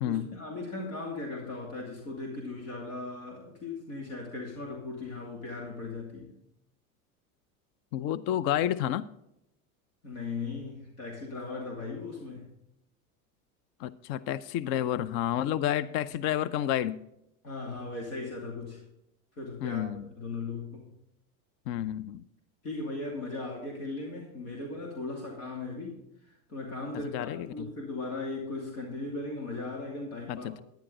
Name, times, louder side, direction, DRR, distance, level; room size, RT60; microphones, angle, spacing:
voice 1, 0.0-6.3 10.0-12.5 17.4-18.8 19.3-19.8 20.2-20.9 22.6-26.0 26.3-30.5, left 3 dB, 85° left, 0 dB, 2.7 m, -38 dB
voice 2, 7.9-9.1 13.8-17.0 19.6-20.1 21.7-22.2 27.1-27.7 30.3-30.6, left 11 dB, 55° left, 17 dB, 0.6 m, -30 dB
10.5 x 10.5 x 3.8 m, 0.81 s
hypercardioid pair, 95°, 44 cm